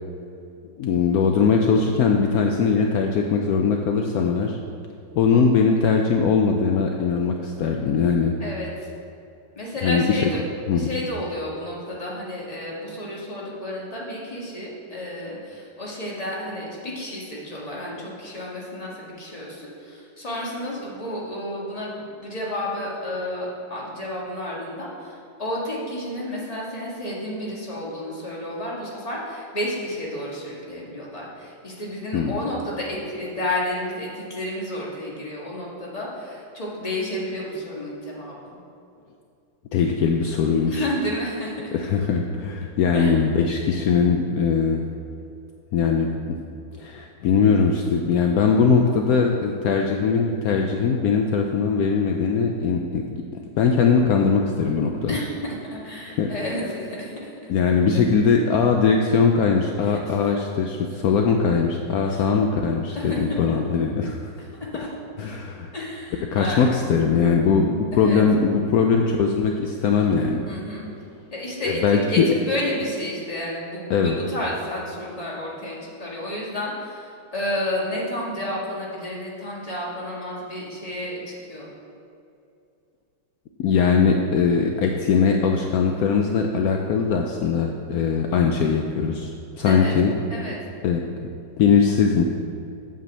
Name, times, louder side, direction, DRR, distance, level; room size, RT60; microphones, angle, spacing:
voice 1, 0.8-4.6 5.2-8.3 9.8-10.3 10.7-10.9 32.1-32.4 39.7-40.9 41.7-44.8 45.7-46.4 46.8-53.0 53.3-55.1 56.1-56.3 57.5-64.3 65.2-65.7 66.3-70.4 71.8-72.3 73.9-74.1 83.6-90.1 90.8-91.0 91.6-92.2, left 5 dB, 75° left, 2 dB, 0.8 m, -20 dB
voice 2, 8.4-8.9 9.6-10.4 10.7-38.6 40.7-41.7 42.9-43.2 55.1-55.4 55.7-57.4 59.8-60.2 62.1-62.3 62.9-63.6 64.7-64.9 65.7-66.7 67.9-68.2 70.5-70.9 71.3-81.7 89.6-89.9 90.3-90.6, left 1 dB, 20° left, -4 dB, 1.6 m, -31 dB
8.1 x 5.2 x 7.2 m, 2.6 s
omnidirectional pair, 2.1 m